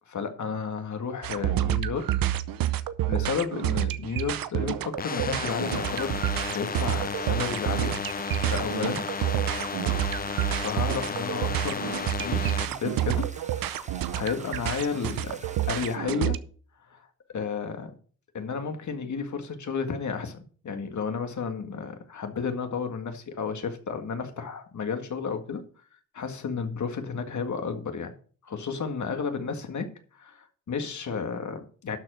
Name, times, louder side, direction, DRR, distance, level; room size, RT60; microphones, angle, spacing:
voice 1, 0.1-2.1 2.7-2.8 3.1-6.2 6.5-8.0 8.5-9.1 10.6-15.4 15.7-16.4 16.8-17.9 18.3-25.6 26.1-28.1 28.4-32.0, left 5 dB, 55° left, 1.9 m, -32 dB
sound 1, 1.2-16.4, right 13 dB, 80° right, 0.7 m, -29 dB
sound 2, 5.0-12.7, left 6 dB, 25° left, 0.5 m, -33 dB
sound 3, 5.5-16.0, right 3 dB, 20° right, 1.2 m, -47 dB
12.0 x 4.2 x 6.3 m
cardioid pair, 70°, 34 cm